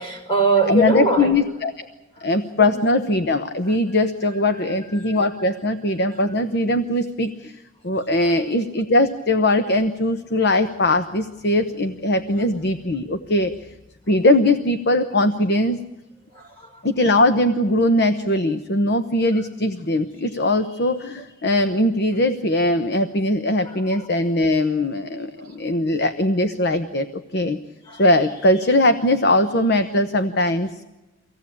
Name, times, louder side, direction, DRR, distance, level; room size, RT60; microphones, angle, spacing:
voice 1, 0.0-1.4 2.6-2.7 5.0-5.2 8.2-8.3 16.3-16.8 23.7-23.8 25.4-25.6 27.9-28.0, right 2 dB, 30° left, 3 dB, 5.9 m, -22 dB
voice 2, 0.7-1.9 2.2-13.7 14.1-15.8 16.8-27.6 27.8-30.8, left 1 dB, 55° left, 9 dB, 1.0 m, -20 dB
25.0 x 17.0 x 8.6 m, 1.1 s
head